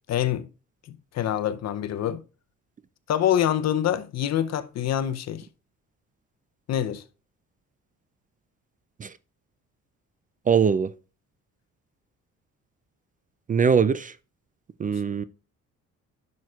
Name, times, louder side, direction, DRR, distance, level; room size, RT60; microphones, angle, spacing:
voice 1, 0.1-0.5 0.9-2.2 3.1-5.5 6.7-7.0, left 10 dB, 60° left, 0.6 m, -25 dB
voice 2, 10.5-10.9 13.5-14.1 14.8-15.2, right 6 dB, 30° right, 0.4 m, -21 dB
10.5 x 6.3 x 2.4 m
cardioid pair, 90°, 30 cm